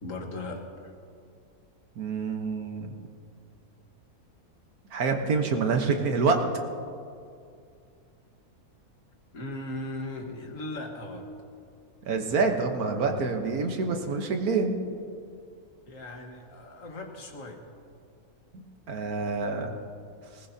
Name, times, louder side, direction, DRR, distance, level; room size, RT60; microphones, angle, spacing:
voice 1, 0.0-0.9 9.3-11.3 15.9-17.7, left 2 dB, 60° left, 2 dB, 1.8 m, -38 dB
voice 2, 2.0-2.9 4.9-6.4 12.1-14.8 18.9-19.7, right 4 dB, 80° right, 4 dB, 1.6 m, -26 dB
20.0 x 19.0 x 2.8 m, 2.4 s
omnidirectional pair, 1.6 m